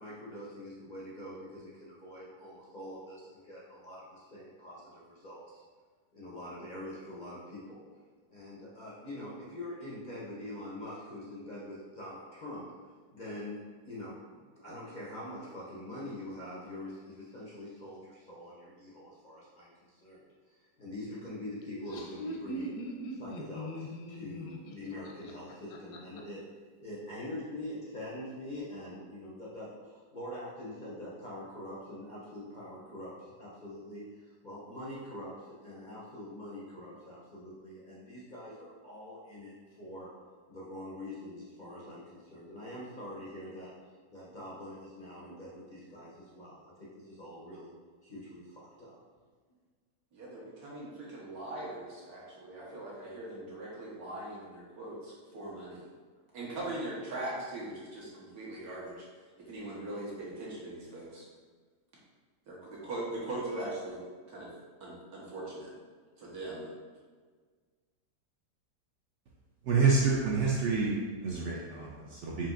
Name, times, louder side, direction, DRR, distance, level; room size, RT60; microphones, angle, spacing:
voice 1, 0.0-5.6 6.1-7.8 8.3-12.6 13.1-13.6 13.8-14.2 14.6-20.2 20.5-22.8 23.1-26.4 26.8-40.1 40.5-43.7 44.1-47.7 48.0-49.0, left 1 dB, 60° left, -6 dB, 0.4 m, -44 dB
Laughter, 21.6-26.2, equal, 85° left, 1.2 m, -41 dB
voice 2, 50.1-55.9 56.3-59.0 59.4-61.2 62.5-64.0 64.3-64.5 64.8-65.7 66.2-66.7, right 1 dB, 65° right, -5 dB, 1.5 m, -40 dB
voice 3, 69.6-72.5, right 4 dB, 80° right, -3 dB, 0.6 m, -28 dB
5.8 x 2.8 x 2.4 m, 1.5 s
omnidirectional pair, 1.8 m